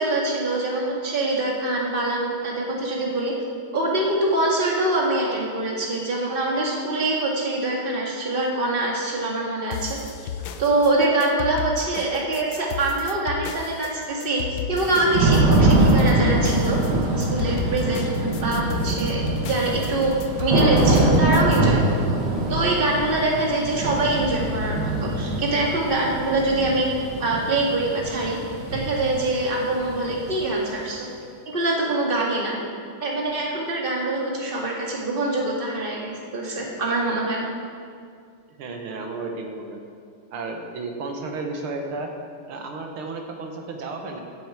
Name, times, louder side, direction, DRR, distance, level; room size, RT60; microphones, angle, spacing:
voice 1, 0.0-3.3 3.7-10.0 10.6-14.4 14.7-16.8 17.2-18.0 18.4-22.0 22.5-26.9 27.2-28.4 28.7-31.1 31.5-32.5 33.0-37.4, right 2 dB, 25° right, -2 dB, 1.9 m, -24 dB
sound 1, 9.7-21.6, left 7 dB, 70° left, 1.4 m, -33 dB
Thunder / Rain, 14.7-30.5, right 2 dB, 55° right, 1.9 m, -23 dB
voice 2, 38.5-39.8 40.3-42.1 42.5-44.2, right 3 dB, 90° right, 2 dB, 2.1 m, -33 dB
15.5 x 8.0 x 4.9 m, 2.2 s
omnidirectional pair, 2.3 m